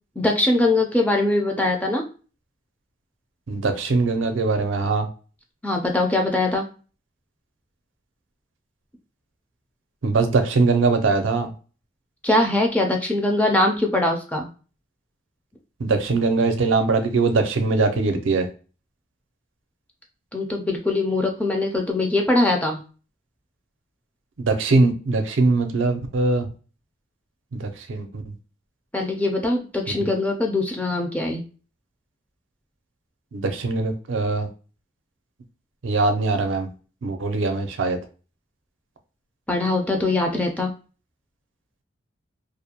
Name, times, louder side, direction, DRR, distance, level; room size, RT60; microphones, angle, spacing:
voice 1, 0.2-2.0 5.6-6.6 12.2-14.5 20.3-22.8 28.9-31.4 39.5-40.7, left 2 dB, 5° left, 1 dB, 0.3 m, -22 dB
voice 2, 3.5-5.1 10.0-11.5 15.8-18.5 24.4-26.5 27.5-28.2 30.0-30.1 33.3-34.5 35.8-36.7 37.0-38.0, right 3 dB, 85° right, 6 dB, 0.5 m, -21 dB
2.4 x 2.1 x 2.8 m, 0.36 s
head